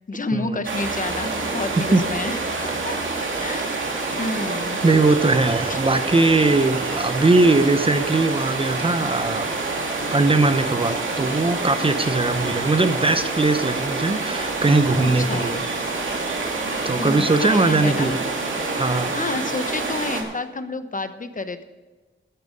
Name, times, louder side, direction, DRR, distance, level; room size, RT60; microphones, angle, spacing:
voice 1, 0.1-2.4 2.8-3.0 3.4-4.8 5.7-5.8 15.0-15.5 17.0-18.2 18.6-21.6, left 3 dB, 40° left, 10 dB, 1.0 m, -30 dB
sound 1, 0.6-20.2, right 3 dB, 75° right, 2.5 m, -27 dB
voice 2, 4.8-9.5 10.1-15.6 16.0-16.2 16.8-18.2 18.8-19.1, right 3 dB, 25° right, 10 dB, 0.7 m, -20 dB
12.5 x 10.5 x 5.2 m, 1.3 s
wide cardioid pair, 110°, 20 cm